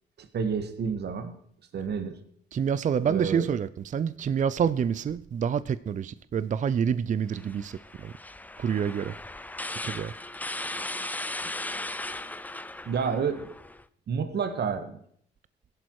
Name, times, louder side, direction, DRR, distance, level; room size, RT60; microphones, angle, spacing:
voice 1, 0.2-1.4 1.7-2.2 3.1-3.5 12.8-13.5 14.1-15.0, right 6 dB, 55° right, 1.7 m, -29 dB
voice 2, 2.5-8.1 8.6-9.1 9.8-10.1, right 7 dB, 40° right, 0.5 m, -27 dB
sound 1, 7.3-13.8, left 2 dB, 10° left, 0.6 m, -37 dB
16.0 x 11.0 x 4.7 m
cardioid pair, 90°, 20 cm